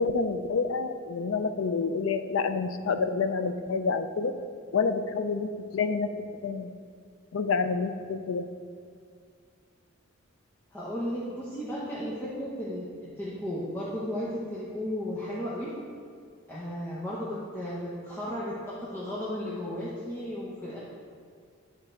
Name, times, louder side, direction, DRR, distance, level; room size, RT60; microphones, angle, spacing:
voice 1, 0.0-4.3 4.7-6.7 7.3-8.5, left 4 dB, 75° left, 10 dB, 0.4 m, -28 dB
voice 2, 10.7-15.7 16.5-20.8, equal, 10° left, -9 dB, 0.9 m, -34 dB
9.9 x 3.9 x 4.5 m, 2.1 s
head